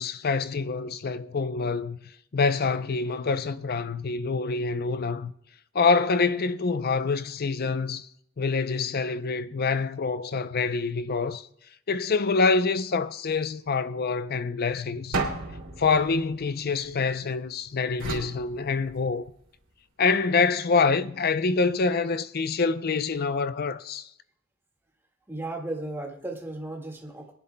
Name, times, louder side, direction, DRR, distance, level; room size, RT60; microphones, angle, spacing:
voice 1, 0.0-2.0 2.3-5.3 5.7-8.1 8.4-11.5 11.9-15.2 15.8-19.3 20.0-24.1, left 4 dB, 50° left, 0.6 m, -26 dB
sound 1, 15.1-17.3 18.0-19.4, right 3 dB, 65° right, 2.7 m, -34 dB
voice 2, 25.3-27.3, right 2 dB, 10° right, 1.9 m, -35 dB
23.0 x 11.0 x 2.2 m
head